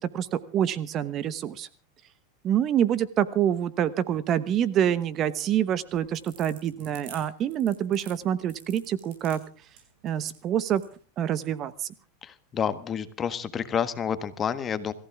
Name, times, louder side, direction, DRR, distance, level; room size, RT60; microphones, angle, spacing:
voice 1, 0.1-1.7 2.4-9.4 10.0-10.8 11.2-11.9, right 10 dB, 35° right, 16 dB, 1.0 m, -26 dB
sound 1, 5.9-10.9, right 7 dB, 70° right, 7.4 m, -49 dB
voice 2, 12.2-14.9, left 7 dB, 25° left, 12 dB, 1.4 m, -29 dB
25.5 x 15.0 x 3.5 m, 0.37 s
supercardioid pair, 130°, 0 cm